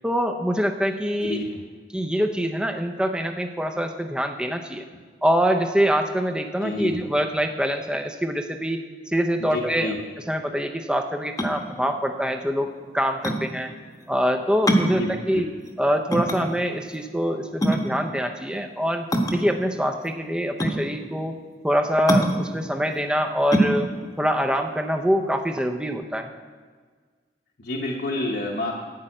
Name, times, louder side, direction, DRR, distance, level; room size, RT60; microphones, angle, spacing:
voice 1, 0.0-1.4 1.9-4.8 5.2-8.8 9.1-9.9 10.3-13.7 14.1-15.5 15.8-19.1 19.3-21.3 21.6-23.9 24.2-26.3, equal, 5° right, 5 dB, 0.5 m, -24 dB
voice 2, 1.3-1.6 4.9-5.0 6.6-7.0 9.4-10.0 14.9-15.4 27.6-28.8, left 1 dB, 60° left, -2 dB, 1.0 m, -29 dB
sound 1, 11.2-25.6, right 1 dB, 20° left, 0.9 m, -26 dB
11.5 x 5.5 x 8.9 m, 1.5 s
head